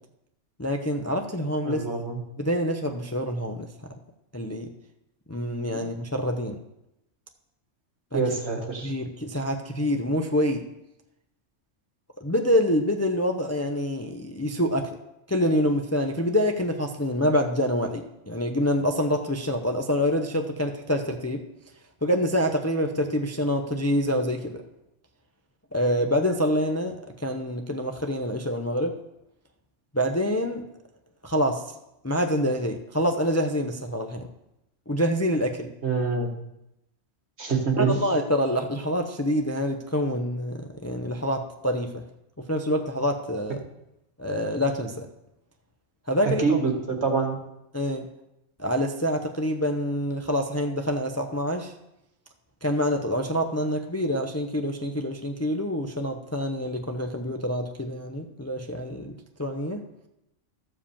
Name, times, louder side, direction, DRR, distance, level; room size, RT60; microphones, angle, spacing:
voice 1, 0.6-1.8 2.4-3.7 4.3-4.7 5.3-6.6 8.1-8.2 8.8-10.7 12.2-14.9 15.3-21.4 22.0-24.6 25.7-28.9 29.9-30.6 31.2-31.6 32.0-34.3 34.9-35.7 37.8-42.0 42.5-43.6 44.2-45.1 46.1-46.6 47.7-48.1 48.6-51.7 52.6-59.1 59.4-59.8, equal, 15° left, 4 dB, 0.6 m, -26 dB
voice 2, 1.6-2.2 5.7-5.9 8.1-8.9 35.8-36.3 37.4-37.9 46.4-47.4, right 4 dB, 60° right, 3 dB, 2.0 m, -25 dB
13.5 x 5.1 x 7.1 m, 0.86 s
omnidirectional pair, 1.3 m